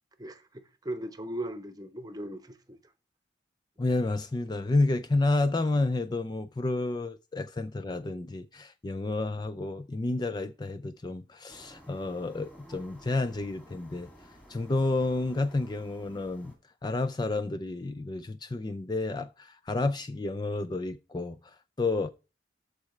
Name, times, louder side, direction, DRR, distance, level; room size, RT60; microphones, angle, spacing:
voice 1, 0.2-2.8, right 1 dB, 20° right, 0.9 m, -38 dB
voice 2, 3.8-14.1 14.5-16.5 16.8-22.1, left 2 dB, 25° left, 0.4 m, -30 dB
sound 1, 11.5-16.5, equal, 10° left, 2.4 m, -53 dB
13.5 x 4.8 x 3.2 m
head